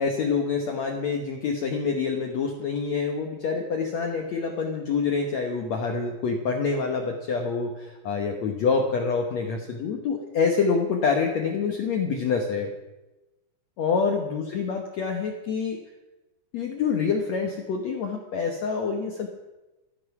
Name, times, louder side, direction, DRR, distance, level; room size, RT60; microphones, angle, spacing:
voice 1, 0.0-12.7 13.8-15.8 16.5-19.3, left 5 dB, 80° left, 2 dB, 1.5 m, -26 dB
14.0 x 13.0 x 5.9 m, 1.0 s
omnidirectional pair, 5.0 m